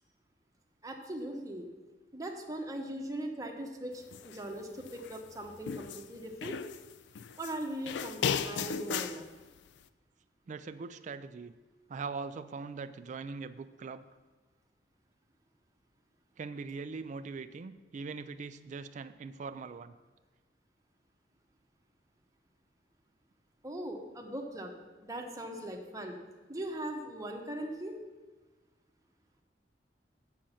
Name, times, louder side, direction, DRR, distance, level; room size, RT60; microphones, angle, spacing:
voice 1, 0.8-1.7 2.1-6.6 7.4-9.3 23.6-24.7 25.0-26.2 26.5-28.0, right 1 dB, 20° right, 2 dB, 1.0 m, -40 dB
sound 1, 4.1-4.4 4.8-6.1 6.4-7.6 7.9-9.2, left 7 dB, 70° left, 0.4 m, -35 dB
voice 2, 10.5-11.6 11.9-14.0 16.4-19.9, right 4 dB, 40° right, 10 dB, 0.4 m, -41 dB
7.5 x 6.5 x 5.7 m, 1.3 s
head